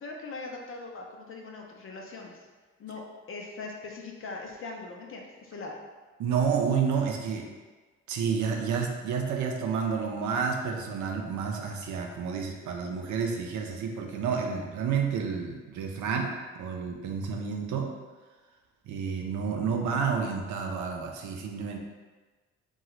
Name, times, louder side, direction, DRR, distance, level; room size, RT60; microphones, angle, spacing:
voice 1, 0.0-2.4 2.8-3.0 3.3-5.7, left 3 dB, 45° left, 1 dB, 0.6 m, -40 dB
voice 2, 6.2-7.5 8.1-17.9 18.9-21.8, right 6 dB, 75° right, 2 dB, 0.5 m, -30 dB
2.7 x 2.3 x 3.1 m, 1.3 s
cardioid pair, 90°, 30 cm